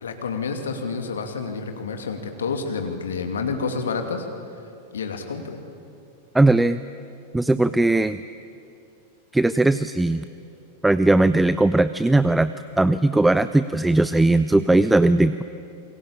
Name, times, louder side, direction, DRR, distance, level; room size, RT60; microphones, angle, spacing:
voice 1, 0.0-4.3 4.9-5.6, left 5 dB, 65° left, 5 dB, 2.6 m, -29 dB
voice 2, 6.3-6.8 7.3-8.2 9.3-10.2 10.8-15.4, right 2 dB, 5° right, 14 dB, 0.6 m, -19 dB
28.5 x 22.5 x 8.8 m, 2.5 s
figure-of-eight pair, 90°, 0 cm